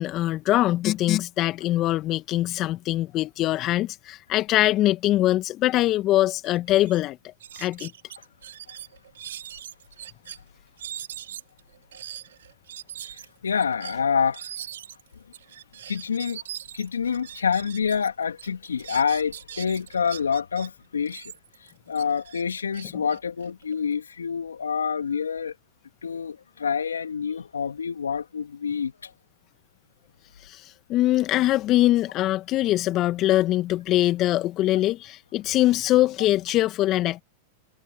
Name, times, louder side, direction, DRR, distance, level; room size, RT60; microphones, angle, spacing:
voice 1, 0.0-7.2 7.6-7.9 30.4-37.2, left 15 dB, 40° left, 2.1 m, -23 dB
sound 1, 6.4-6.6 6.8-7.0 7.4-10.4 10.8-18.1 18.4-20.7 21.1-23.9, right 10 dB, 75° right, 4.8 m, -41 dB
voice 2, 13.4-14.5 15.9-16.4 16.7-21.2 21.9-25.5 26.0-29.1, left 6 dB, 85° left, 3.1 m, -27 dB
hypercardioid pair, 100°, 0 cm